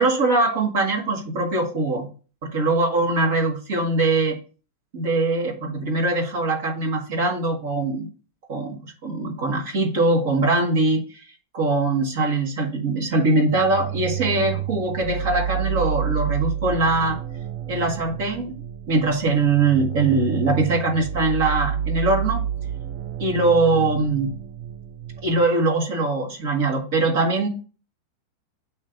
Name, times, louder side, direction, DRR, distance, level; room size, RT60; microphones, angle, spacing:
voice 1, 0.0-2.1 2.4-4.4 4.9-8.1 8.5-8.8 9.0-11.0 11.5-17.2 17.7-18.5 18.9-22.4 23.2-24.3 25.2-27.5, right 3 dB, 60° right, 1 dB, 1.7 m, -22 dB
sound 1, 13.5-25.5, right 9 dB, 40° right, 0.5 m, -29 dB
7.4 x 3.3 x 5.1 m, 0.36 s
supercardioid pair, 160°, 0 cm